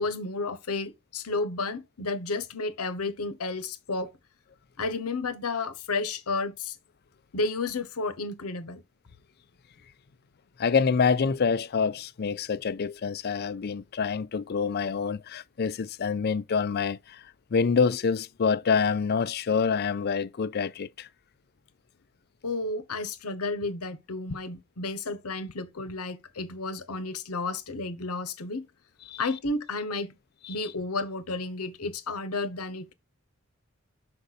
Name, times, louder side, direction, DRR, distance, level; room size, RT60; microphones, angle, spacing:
voice 1, 0.0-4.1 4.8-6.8 7.3-8.8 22.4-28.7 29.2-30.2 30.5-32.9, left 3 dB, 85° left, 1.0 m, -32 dB
voice 2, 10.6-17.2 17.5-21.1 29.1-29.2, left 5 dB, 45° left, 0.4 m, -26 dB
6.6 x 5.1 x 4.0 m
head